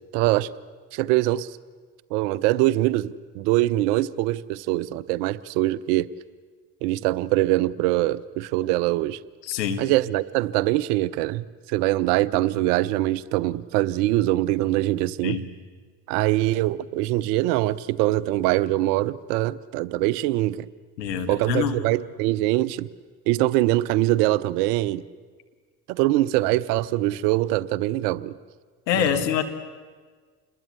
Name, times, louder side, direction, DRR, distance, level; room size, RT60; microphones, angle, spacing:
voice 1, 0.1-0.5 0.9-1.6 2.1-6.1 6.8-9.2 9.8-15.4 16.1-20.7 21.3-22.9 23.3-25.0 25.9-28.3 28.9-29.0, right 16 dB, 70° right, 19 dB, 0.8 m, -23 dB
voice 2, 9.4-9.9 15.2-15.4 21.0-21.8 28.9-29.4, left 8 dB, 80° left, 7 dB, 1.9 m, -25 dB
27.5 x 21.0 x 8.4 m, 1.5 s
figure-of-eight pair, 50°, 49 cm